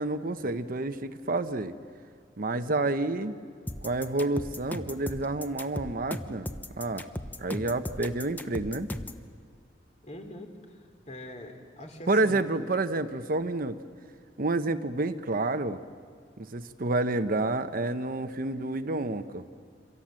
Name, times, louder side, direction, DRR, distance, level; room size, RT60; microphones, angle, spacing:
voice 1, 0.0-1.7 2.4-3.3 3.8-6.5 6.8-7.0 7.4-8.9 12.1-13.8 14.4-15.8 16.4-19.4, right 2 dB, 50° right, 10 dB, 0.9 m, -29 dB
sound 1, 3.7-9.2, left 1 dB, 10° left, 0.9 m, -37 dB
voice 2, 10.0-12.5, left 1 dB, 40° left, 5 dB, 3.1 m, -43 dB
28.0 x 25.0 x 7.6 m, 2.1 s
head